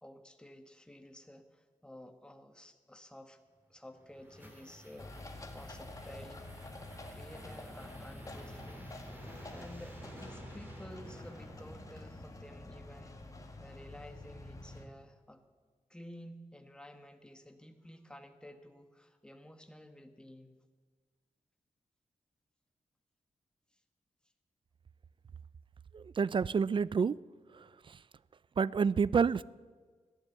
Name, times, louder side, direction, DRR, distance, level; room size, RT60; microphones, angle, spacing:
voice 1, 0.0-3.4 3.7-5.1 5.5-8.9 9.5-15.4 15.9-20.5 23.7-23.8, left 1 dB, 5° left, 1.4 m, -52 dB
sound 1, 3.7-12.5, equal, 15° right, 3.5 m, -54 dB
sound 2, 5.0-14.8, left 1 dB, 25° left, 1.8 m, -48 dB
voice 2, 25.9-27.2 27.5-28.0 28.6-29.4, right 6 dB, 40° right, 0.4 m, -29 dB
15.5 x 11.0 x 8.0 m
wide cardioid pair, 95°, 13 cm